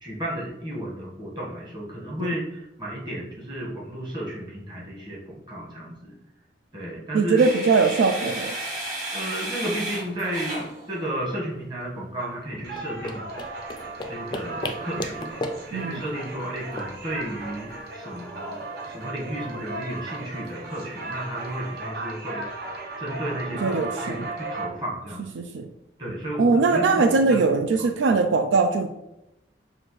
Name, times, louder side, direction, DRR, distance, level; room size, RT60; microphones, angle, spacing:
voice 1, 0.0-6.1 6.7-7.4 9.1-13.3 14.1-15.4 15.7-22.7 23.0-25.3 26.0-27.9, right 1 dB, 25° right, -5 dB, 1.3 m, -33 dB
voice 2, 7.1-8.6 15.7-16.0 23.6-24.3 25.4-25.7 26.4-28.9, right 4 dB, 80° right, 7 dB, 0.3 m, -21 dB
sound 1, 7.4-11.4 13.8-21.8, right 1 dB, 45° right, 1.4 m, -38 dB
sound 2, 12.2-24.7, right 2 dB, 60° right, 0.8 m, -36 dB
sound 3, 12.6-17.8, left 1 dB, 25° left, 0.4 m, -36 dB
6.2 x 2.5 x 3.1 m, 0.89 s
head